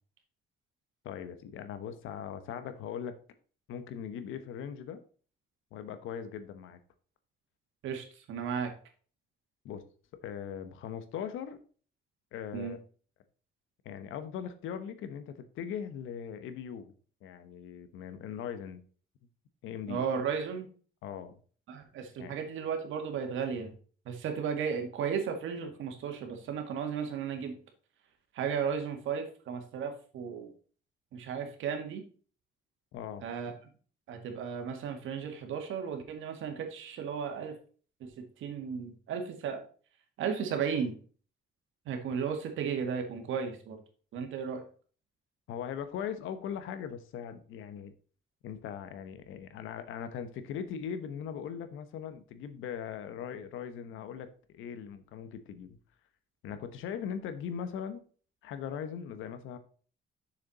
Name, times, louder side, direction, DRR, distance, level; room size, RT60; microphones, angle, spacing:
voice 1, 1.0-3.2 3.7-5.0 5.7-6.8 9.6-9.8 10.1-11.6 12.3-12.8 13.8-16.9 17.2-18.8 19.6-20.0 21.0-21.4 22.2-22.4 32.9-33.3 45.5-47.9 48.4-55.8 56.4-58.0 58.4-59.6, left 8 dB, 90° left, 11 dB, 1.1 m, -40 dB
voice 2, 7.8-8.7 12.5-12.8 19.9-20.7 21.7-23.7 24.1-27.6 28.3-30.5 31.1-32.0 33.2-33.5 34.1-37.6 38.0-39.6 40.2-41.0 41.9-43.8 44.1-44.6, right 7 dB, 80° right, 5 dB, 1.9 m, -34 dB
7.0 x 6.6 x 4.1 m, 0.41 s
cardioid pair, 90°, 20 cm